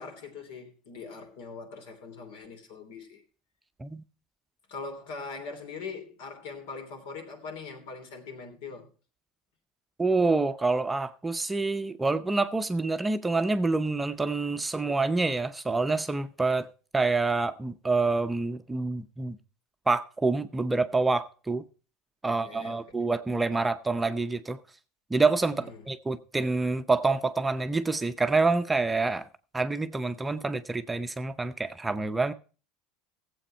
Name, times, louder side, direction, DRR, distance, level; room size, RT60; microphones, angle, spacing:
voice 1, 0.0-3.2 4.7-8.9 22.2-23.2 25.5-25.8, left 4 dB, 80° left, 3.1 m, -42 dB
voice 2, 10.0-16.7 16.9-19.4 19.9-21.6 22.2-24.6 25.1-29.3 29.5-32.3, right 3 dB, 10° right, 0.6 m, -27 dB
15.5 x 7.8 x 4.4 m
supercardioid pair, 130°, 0 cm